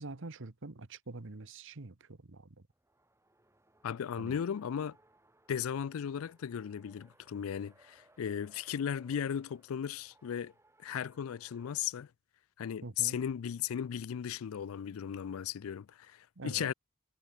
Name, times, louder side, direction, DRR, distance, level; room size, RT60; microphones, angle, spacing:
voice 1, 0.0-2.6 4.2-4.4 12.8-13.2 16.4-16.7, right 3 dB, 65° right, 1.2 m, -45 dB
Race car auto racing, 2.7-11.9, right 2 dB, 15° right, 5.0 m, -66 dB
voice 2, 3.8-5.0 5.5-10.5 10.8-12.1 12.6-16.7, left 8 dB, 75° left, 0.4 m, -36 dB
head